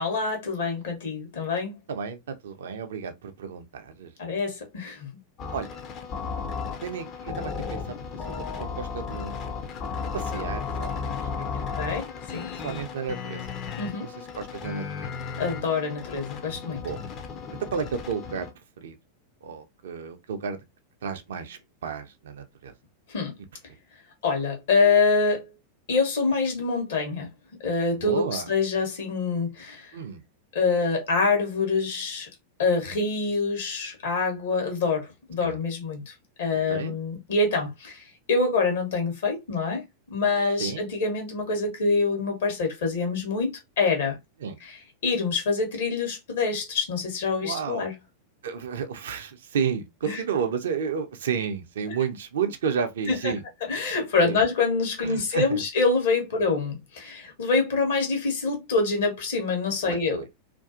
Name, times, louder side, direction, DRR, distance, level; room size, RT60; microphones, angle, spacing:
voice 1, 0.0-1.8 4.2-5.1 11.5-12.5 13.8-14.1 15.4-16.8 23.1-23.3 24.2-25.5 25.9-27.3 27.6-29.9 30.5-32.3 32.6-36.1 36.4-44.2 44.6-47.9 50.1-50.2 53.1-60.2, left 4 dB, 60° left, 1.0 m, -26 dB
voice 2, 1.9-4.1 5.5-5.7 6.8-7.8 8.3-9.4 10.1-11.5 12.6-13.6 14.3-15.1 16.8-17.0 17.7-18.5 18.8-18.9 19.4-20.6 21.0-22.7 27.9-28.5 29.9-30.2 35.4-35.6 36.7-36.9 40.6-40.8 44.4-44.6 47.4-47.8 48.4-53.4 54.2-54.4 55.0-55.6 59.9-60.2, right 6 dB, 60° right, 0.4 m, -32 dB
sound 1, 5.4-18.5, left 5 dB, 35° left, 0.5 m, -34 dB
2.5 x 2.3 x 2.4 m
figure-of-eight pair, 90°, 0 cm